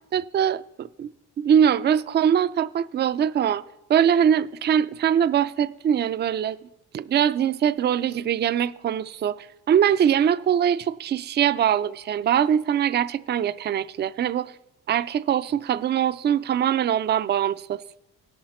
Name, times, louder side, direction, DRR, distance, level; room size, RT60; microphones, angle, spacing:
voice 1, 0.1-1.1 1.4-3.6 3.9-6.6 6.9-14.5 14.9-17.8, right 9 dB, 35° right, 0.4 m, -22 dB
17.0 x 5.9 x 4.3 m
supercardioid pair, 70°, 32 cm